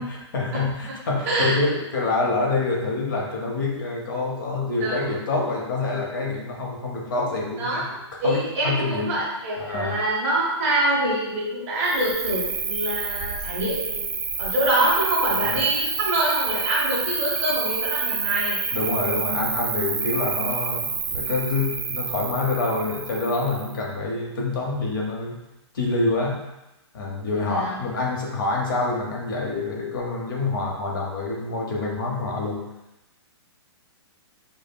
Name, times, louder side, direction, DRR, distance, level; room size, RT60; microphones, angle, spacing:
voice 1, 0.0-9.1 9.6-10.0 15.2-15.6 18.7-25.4 25.7-26.4 26.9-32.6, left 3 dB, 45° left, -1 dB, 0.7 m, -26 dB
voice 2, 1.2-1.6 4.8-5.0 7.6-7.8 8.2-18.6 27.4-27.8, right 1 dB, 30° right, -6 dB, 0.9 m, -25 dB
Cricket, 11.8-23.8, right 5 dB, 85° right, 0.6 m, -28 dB
5.1 x 2.0 x 2.2 m, 0.95 s
hypercardioid pair, 170°, 15 cm